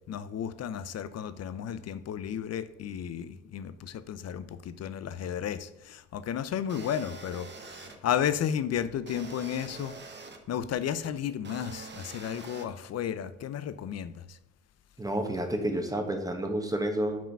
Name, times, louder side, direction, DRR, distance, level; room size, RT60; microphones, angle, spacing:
voice 1, 0.1-9.9 10.5-14.2, left 9 dB, 55° left, 13 dB, 0.6 m, -33 dB
sound 1, 6.7-8.0 9.1-10.4 11.4-12.7, right 4 dB, 35° right, 1.1 m, -45 dB
voice 2, 15.0-17.3, right 1 dB, 10° right, 4 dB, 1.4 m, -30 dB
5.7 x 4.9 x 5.9 m, 0.96 s
cardioid pair, 90°, 30 cm